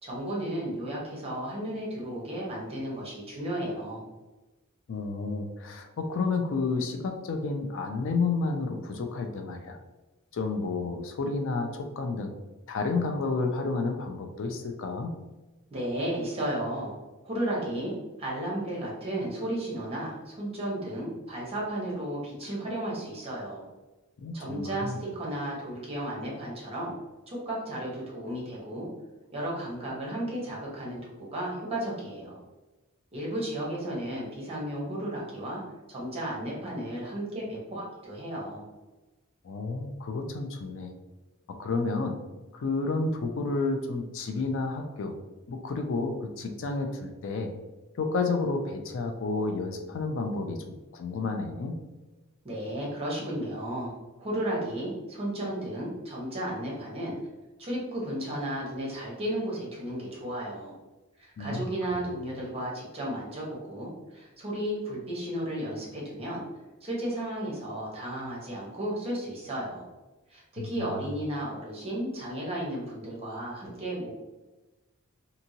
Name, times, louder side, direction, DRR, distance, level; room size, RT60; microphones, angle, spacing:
voice 1, 0.0-4.0 15.7-17.0 17.2-23.6 24.3-26.9 27.3-28.9 29.3-32.4 33.1-35.6 35.9-38.6 52.4-57.1 57.6-60.7 61.4-66.4 66.8-69.9 70.3-74.1, right 1 dB, 30° right, -4 dB, 1.0 m, -34 dB
voice 2, 4.9-9.8 10.3-12.3 12.7-15.1 24.2-25.0 39.4-40.9 41.5-42.2 42.5-45.1 45.5-47.5 48.0-51.8 61.4-61.7 61.9-62.0 70.6-70.9, left 3 dB, 65° left, 5 dB, 0.4 m, -31 dB
2.7 x 2.7 x 2.8 m, 1.1 s
head